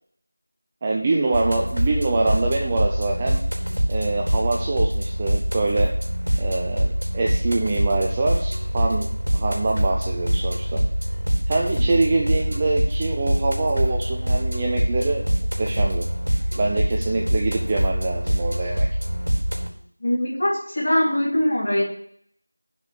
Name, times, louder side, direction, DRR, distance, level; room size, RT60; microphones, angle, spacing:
voice 1, 0.8-3.4 3.9-5.9 6.4-9.1 9.3-10.9 11.5-15.3 15.6-16.1 16.6-18.9, right 3 dB, 10° right, 0 dB, 0.4 m, -24 dB
sound 1, 1.3-19.7, equal, 75° right, 4.1 m, -24 dB
voice 2, 20.0-21.8, left 1 dB, 25° left, -8 dB, 3.5 m, -22 dB
7.3 x 6.8 x 7.5 m, 0.65 s
figure-of-eight pair, 175°, 0 cm